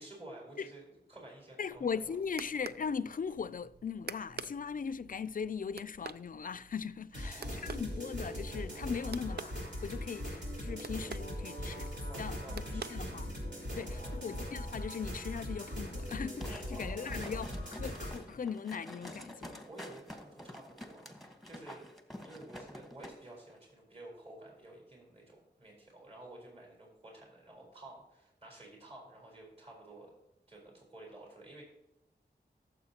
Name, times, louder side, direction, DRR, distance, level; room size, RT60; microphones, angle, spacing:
voice 1, 0.0-2.2 7.2-7.7 12.0-13.2 13.7-14.3 16.7-17.3 19.6-21.9 22.2-30.1 30.5-31.6, right 2 dB, 35° right, 4.0 m, -52 dB
voice 2, 1.6-11.9 12.2-12.4 12.7-13.3 13.7-19.6, left 6 dB, 50° left, 0.4 m, -39 dB
sound 1, 1.7-13.6, right 6 dB, 65° right, 0.5 m, -50 dB
sound 2, 7.1-18.2, equal, 80° right, 3.4 m, -40 dB
sound 3, 16.4-23.2 23.5-23.6, left 1 dB, ahead, 1.3 m, -48 dB
14.0 x 7.2 x 2.9 m
wide cardioid pair, 60°, 18 cm